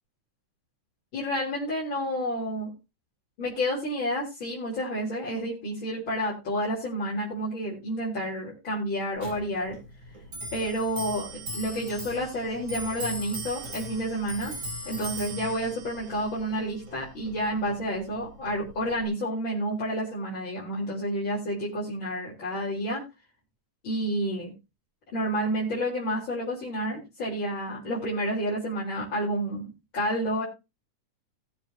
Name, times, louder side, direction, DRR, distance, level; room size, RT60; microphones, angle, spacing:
voice 1, 1.1-2.7 3.4-9.8 10.5-14.5 14.8-23.0 23.8-24.5 25.1-30.4, equal, 35° left, -6 dB, 4.2 m, -30 dB
Clock, 9.2-19.1, right 1 dB, 40° right, 4.4 m, -39 dB
20.0 x 7.4 x 2.8 m, 0.26 s
omnidirectional pair, 3.7 m